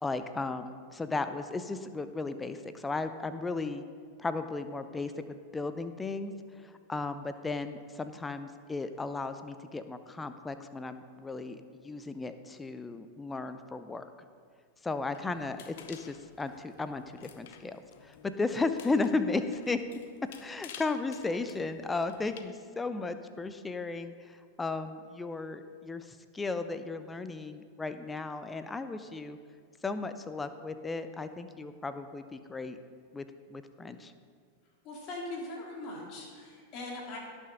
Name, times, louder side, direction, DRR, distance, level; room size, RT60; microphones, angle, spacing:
voice 1, 0.0-3.8 4.2-14.1 14.8-19.8 20.4-29.4 29.8-32.8 33.1-34.1, left 3 dB, 10° left, 10 dB, 0.6 m, -35 dB
sound 1, 15.1-22.4, left 9 dB, 55° left, 0.6 m, -53 dB
voice 2, 34.8-37.2, left 2 dB, 40° left, -2 dB, 2.8 m, -40 dB
17.0 x 6.3 x 3.8 m, 2.1 s
figure-of-eight pair, 90°, 0 cm